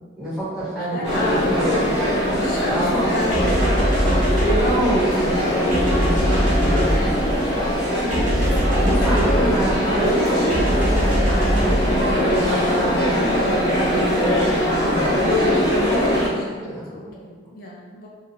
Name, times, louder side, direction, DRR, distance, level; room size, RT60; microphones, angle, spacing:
voice 1, 0.2-2.1 2.7-3.4 3.8-7.2 8.8-12.4 12.7-14.3 14.6-15.2 15.5-15.6 16.6-17.4, right 1 dB, 5° right, -12 dB, 0.9 m, -28 dB
voice 2, 0.7-3.5 13.1-13.8 15.1-15.5 16.0-18.1, left 1 dB, 45° left, -3 dB, 0.5 m, -31 dB
sound 1, 1.0-16.3, equal, 70° left, 0.9 m, -21 dB
sound 2, 3.3-12.9, equal, 40° right, 0.7 m, -23 dB
sound 3, 7.1-15.5, equal, 70° right, 0.4 m, -39 dB
2.5 x 2.3 x 2.9 m, 1.5 s
head